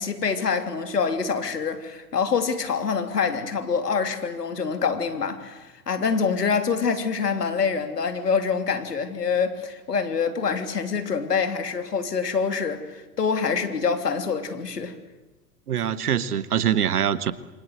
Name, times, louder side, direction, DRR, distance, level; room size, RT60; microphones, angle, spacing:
voice 1, 0.0-15.0, left 5 dB, 75° left, 3.3 m, -26 dB
voice 2, 15.7-17.3, right 9 dB, 70° right, 1.6 m, -23 dB
27.5 x 25.0 x 8.0 m
figure-of-eight pair, 100°, 48 cm